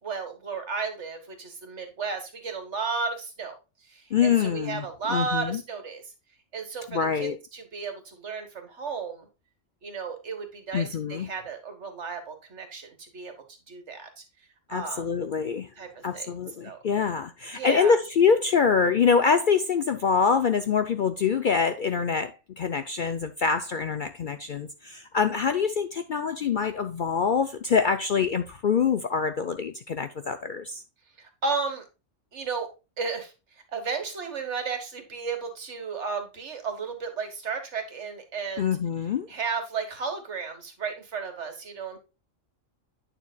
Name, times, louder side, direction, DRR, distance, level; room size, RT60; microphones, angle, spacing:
voice 1, 0.0-3.5 3.9-6.0 6.5-9.3 9.8-13.3 13.7-14.2 14.7-15.0 15.8-16.3 16.6-16.8 17.5-18.0 31.2-31.8 32.3-32.7 33.0-33.3 33.7-38.7 39.3-42.0, right 5 dB, 65° right, 1.8 m, -33 dB
voice 2, 4.1-5.6 6.9-7.4 10.7-11.3 14.7-15.7 16.0-30.8 38.6-39.3, left 6 dB, 55° left, 0.6 m, -25 dB
9.1 x 6.9 x 2.3 m
omnidirectional pair, 1.3 m